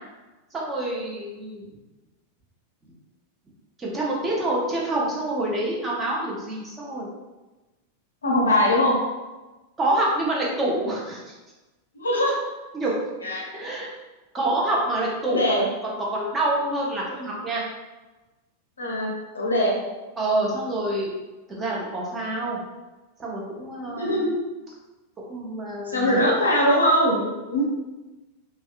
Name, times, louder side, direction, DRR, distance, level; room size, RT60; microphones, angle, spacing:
voice 1, 0.5-1.7 3.8-7.1 9.8-11.3 12.7-13.0 13.5-13.9 14.3-17.6 20.2-21.1 21.5-22.6 23.2-24.3 25.3-26.2, right 1 dB, 20° right, -4 dB, 0.7 m, -27 dB
voice 2, 8.2-9.0 10.2-10.3 11.9-12.3 13.2-13.5 14.4-14.5 15.3-15.7 18.8-19.8 23.8-24.3 25.9-27.6, left 1 dB, 75° left, -2 dB, 0.5 m, -22 dB
2.6 x 2.2 x 2.4 m, 1.1 s
figure-of-eight pair, 90°, 0 cm